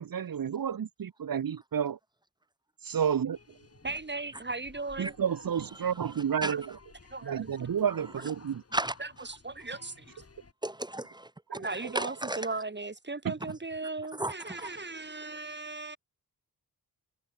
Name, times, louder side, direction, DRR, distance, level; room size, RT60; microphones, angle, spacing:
voice 1, 0.0-2.0 2.8-3.4 5.0-6.8 7.2-8.6 13.2-13.3, right 8 dB, 65° right, 1.1 m, -30 dB
sound 1, 3.3-10.5, left 4 dB, 40° left, 7.3 m, -56 dB
voice 2, 3.8-5.2 6.5-6.6 7.1-7.5 8.1-8.3 8.7-10.1 11.5-16.0, right 3 dB, 30° right, 4.4 m, -37 dB
voice 3, 10.6-11.3 11.9-12.4 14.2-14.7, right 1 dB, 10° right, 0.8 m, -33 dB
wide cardioid pair, 140°, 37 cm